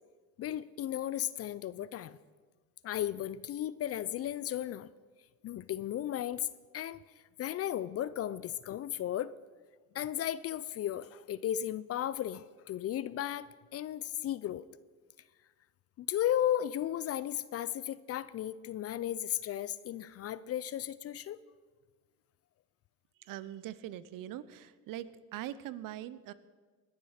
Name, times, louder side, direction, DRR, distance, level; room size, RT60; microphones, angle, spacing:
voice 1, 0.4-2.2 2.8-4.9 5.4-6.5 6.7-7.0 7.4-9.3 9.9-14.6 16.0-21.4, left 11 dB, 40° left, 18 dB, 0.4 m, -35 dB
voice 2, 23.2-26.3, right 12 dB, 60° right, 16 dB, 0.8 m, -42 dB
20.0 x 7.3 x 4.9 m, 1.4 s
supercardioid pair, 100°, 37 cm